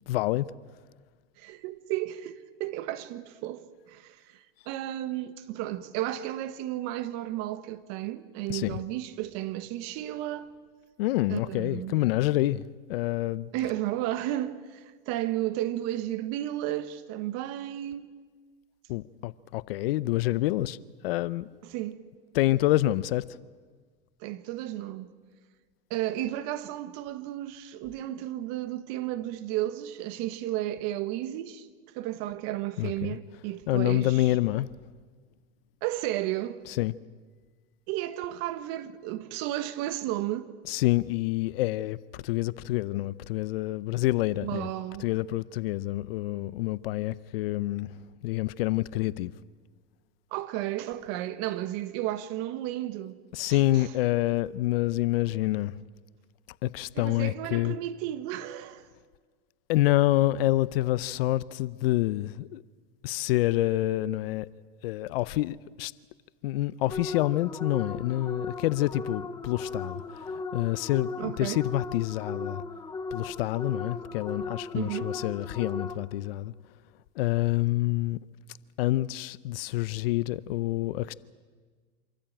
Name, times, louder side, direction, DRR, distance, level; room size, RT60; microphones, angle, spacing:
voice 1, 0.1-0.5 8.5-8.8 11.0-13.5 18.9-20.8 21.0-21.5 22.3-23.3 32.8-33.2 33.7-34.7 36.7-36.9 40.7-44.7 45.0-47.9 48.2-49.3 53.3-55.7 56.6-57.8 59.7-62.6 63.0-64.5 64.8-65.9 66.4-72.6 73.1-76.5 77.2-78.2 78.8-81.1, left 16 dB, 70° left, 0.7 m, -27 dB
voice 2, 1.4-10.5 11.3-11.9 13.5-18.1 21.7-22.0 24.2-25.1 25.9-31.7 31.9-34.2 35.8-36.6 37.9-40.5 44.4-45.1 50.3-53.2 53.5-53.9 56.9-58.9 71.2-71.6 74.7-75.1, right 14 dB, 55° right, 1.3 m, -33 dB
sound 1, 66.9-76.3, left 3 dB, 10° left, 0.8 m, -37 dB
26.5 x 14.0 x 8.8 m
supercardioid pair, 120°, 30 cm